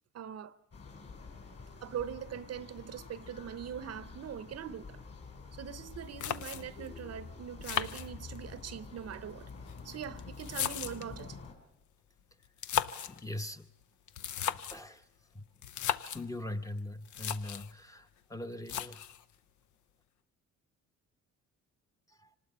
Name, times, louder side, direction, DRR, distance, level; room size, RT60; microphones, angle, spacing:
voice 1, 0.1-0.6 1.8-5.0 5.5-9.5 9.8-11.4, right 9 dB, 55° right, 0.8 m, -42 dB
sound 1, 0.7-11.5, left 4 dB, 50° left, 4.6 m, -48 dB
sound 2, 6.2-6.9 7.6-8.6 9.5-11.2 12.4-13.2 14.1-14.9 15.6-16.3 16.8-16.9 17.1-17.7 18.7-19.2, left 10 dB, 75° left, 0.7 m, -36 dB
voice 2, 13.1-13.7 14.5-15.1 15.3-15.5 16.1-19.0 22.1-22.3, left 1 dB, 10° left, 0.9 m, -41 dB
25.0 x 19.0 x 5.5 m
cardioid pair, 90°, 30 cm